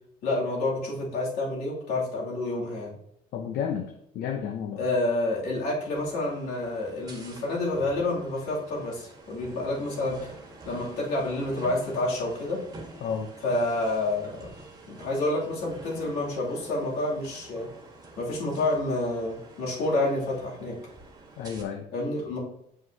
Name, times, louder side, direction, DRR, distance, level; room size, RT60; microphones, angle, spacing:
voice 1, 0.2-2.9 4.8-10.3 10.6-12.7 13.4-14.5 14.9-17.7 18.2-20.8 21.9-22.4, left 2 dB, 90° left, -4 dB, 2.7 m, -29 dB
voice 2, 3.3-4.8 13.0-13.3 21.4-21.9, left 7 dB, 70° left, 5 dB, 0.7 m, -32 dB
sound 1, 5.9-21.6, right 2 dB, 25° right, 1.5 m, -48 dB
7.5 x 5.5 x 2.8 m, 0.73 s
cardioid pair, 150°, 16 cm